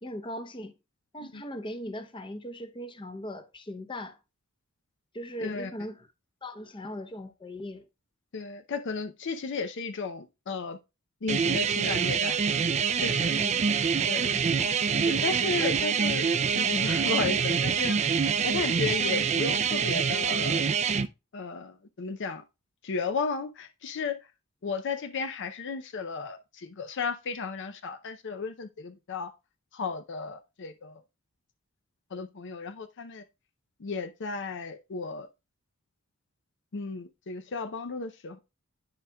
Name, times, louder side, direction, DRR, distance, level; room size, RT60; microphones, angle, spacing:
voice 1, 0.0-0.7 1.1-4.2 5.1-6.1 6.4-7.9 13.3-13.6 14.3-14.7 15.6-15.7, left 1 dB, 20° left, 0.7 m, -39 dB
voice 2, 5.4-5.7 8.3-10.8 11.2-12.4 13.0-13.3 14.1-14.5 15.0-16.3 16.5-20.6 21.3-22.4 22.8-24.2 24.6-29.3 29.7-31.0 32.1-33.2 33.8-35.3 36.7-38.4, left 4 dB, 55° left, 0.5 m, -34 dB
sound 1, 11.3-21.1, right 6 dB, 30° right, 0.4 m, -26 dB
11.5 x 4.9 x 2.2 m
head